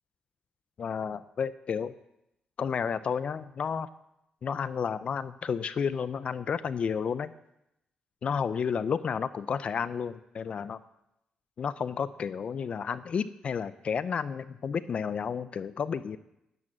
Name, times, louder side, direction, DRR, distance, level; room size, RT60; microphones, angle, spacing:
voice 1, 0.8-1.9 2.6-3.9 4.4-7.3 8.2-10.8 11.6-16.2, left 6 dB, 50° left, 15 dB, 0.6 m, -31 dB
11.0 x 11.0 x 7.5 m, 0.84 s
cardioid pair, 95°, 2 cm